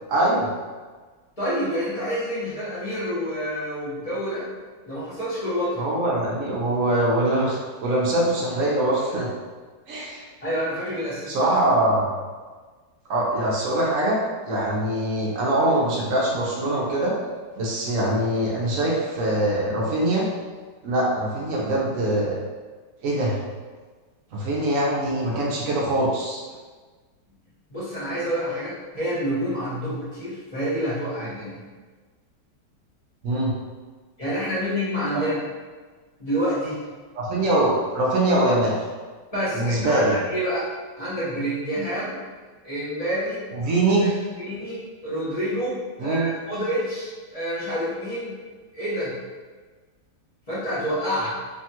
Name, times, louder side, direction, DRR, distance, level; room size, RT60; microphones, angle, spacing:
voice 1, 0.1-0.5 5.8-9.3 9.9-10.2 11.3-12.1 13.1-17.1 17.6-20.3 20.8-22.4 23.0-23.4 24.3-26.4 33.2-33.5 37.2-38.7 39.5-40.2 43.6-44.2 46.0-46.3, right 1 dB, 65° right, -4 dB, 0.8 m, -23 dB
voice 2, 1.4-4.5 4.8-5.9 10.4-11.5 27.7-31.6 34.2-35.4 36.2-36.8 39.3-40.7 40.9-42.1 42.6-43.4 44.0-44.1 44.4-48.4 48.7-49.1 50.5-51.4, equal, 30° left, -10 dB, 0.7 m, -28 dB
3.4 x 2.3 x 2.8 m, 1.4 s
omnidirectional pair, 1.9 m